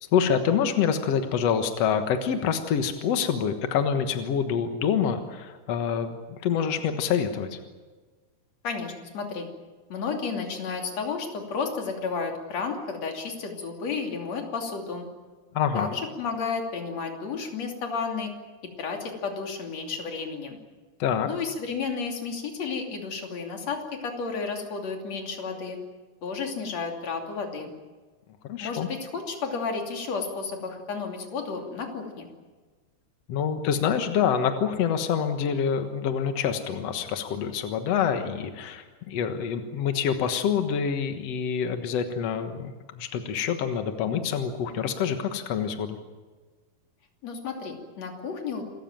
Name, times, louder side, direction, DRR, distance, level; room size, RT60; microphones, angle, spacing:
voice 1, 0.1-7.6 15.5-15.9 21.0-21.3 28.4-28.9 33.3-46.0, left 7 dB, 70° left, 7 dB, 1.5 m, -26 dB
voice 2, 8.6-9.5 9.9-15.1 15.7-18.3 18.8-20.6 21.3-25.8 26.2-27.7 28.6-32.3 47.2-48.6, left 5 dB, 40° left, 3 dB, 3.6 m, -32 dB
27.5 x 15.0 x 9.0 m, 1.4 s
omnidirectional pair, 5.0 m